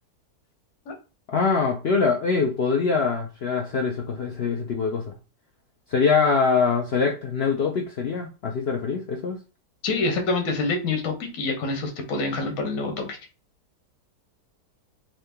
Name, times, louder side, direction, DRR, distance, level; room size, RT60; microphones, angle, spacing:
voice 1, 1.3-5.1 5.9-9.4, left 5 dB, 75° left, 0.5 m, -23 dB
voice 2, 9.8-13.2, left 3 dB, 55° left, 1.3 m, -26 dB
3.7 x 2.8 x 3.5 m
omnidirectional pair, 1.8 m